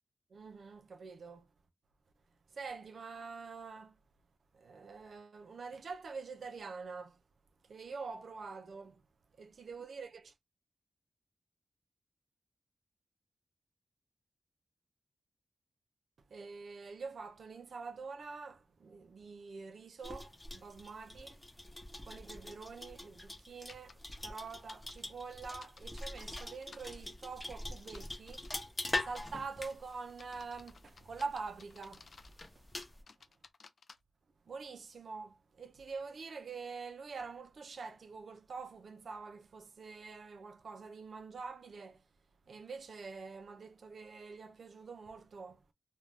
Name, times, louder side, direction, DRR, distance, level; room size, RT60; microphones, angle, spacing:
voice 1, 0.3-1.5 2.5-3.9 4.5-7.2 7.7-9.0 9.4-10.3 16.3-21.4 22.0-28.4 29.0-32.1 34.5-42.0 42.5-45.6, right 4 dB, 65° right, 0.4 m, -46 dB
sound 1, 20.0-33.0, left 2 dB, 15° left, 0.7 m, -44 dB
sound 2, 23.7-23.9 24.4-26.9 27.8-28.7 29.2-29.5 30.1-32.5 32.8-34.0, left 4 dB, 55° left, 0.4 m, -57 dB
2.5 x 2.2 x 3.2 m
wide cardioid pair, 150°, 0 cm